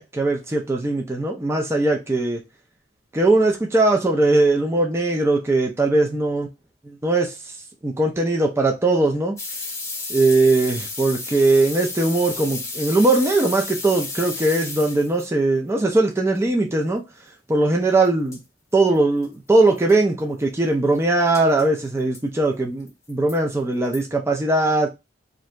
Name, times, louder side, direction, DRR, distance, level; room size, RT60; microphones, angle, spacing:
voice 1, 0.0-2.4 3.1-6.5 6.8-7.5 7.8-9.4 10.1-17.0 17.5-18.4 18.7-24.9, right 2 dB, 15° right, 0.5 m, -20 dB
sound 1, 9.4-15.3 18.0-18.1 18.3-18.4 18.9-19.0 19.2-19.3 19.8-19.9 21.3-21.6 22.1-22.2 22.9-23.4 23.9-24.0, left 3 dB, 15° left, 0.8 m, -32 dB
2.7 x 2.6 x 3.2 m
head